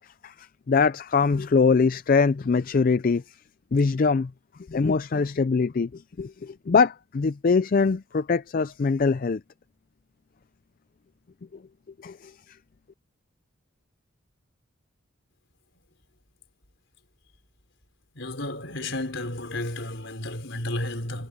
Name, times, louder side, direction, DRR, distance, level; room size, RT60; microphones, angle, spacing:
voice 1, 0.7-3.2 3.7-4.3 4.7-9.4 12.0-12.3, left 4 dB, 45° left, 0.4 m, -23 dB
voice 2, 18.1-21.3, left 1 dB, 60° left, 5.7 m, -32 dB
head